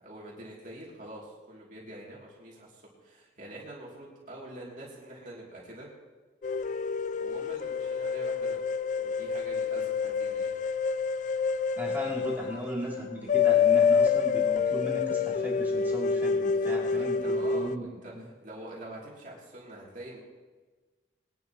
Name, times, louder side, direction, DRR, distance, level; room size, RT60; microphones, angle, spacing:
voice 1, 0.0-5.9 7.2-8.6 9.0-10.5 16.4-20.2, right 1 dB, 45° right, -5 dB, 2.8 m, -45 dB
sound 1, 6.4-17.8, left 6 dB, 40° left, 0.4 m, -27 dB
voice 2, 11.8-17.9 18.1-18.2, equal, 10° right, -5 dB, 2.8 m, -37 dB
21.5 x 11.0 x 3.0 m, 1.3 s
head